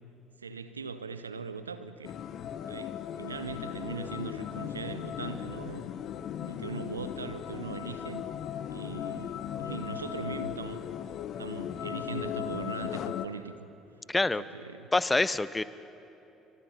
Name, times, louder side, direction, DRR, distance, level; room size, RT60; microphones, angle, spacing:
voice 1, 0.4-2.1 2.7-5.9 6.4-8.2 8.7-10.8 11.4-13.7 14.2-14.9, right 4 dB, 90° right, 12 dB, 0.8 m, -40 dB
sound 1, 2.0-13.3, left 10 dB, 55° left, 0.8 m, -37 dB
voice 2, 14.1-14.4 14.9-15.6, left 2 dB, 15° left, 17 dB, 0.7 m, -26 dB
28.5 x 24.5 x 5.7 m, 2.9 s
figure-of-eight pair, 55°, 0 cm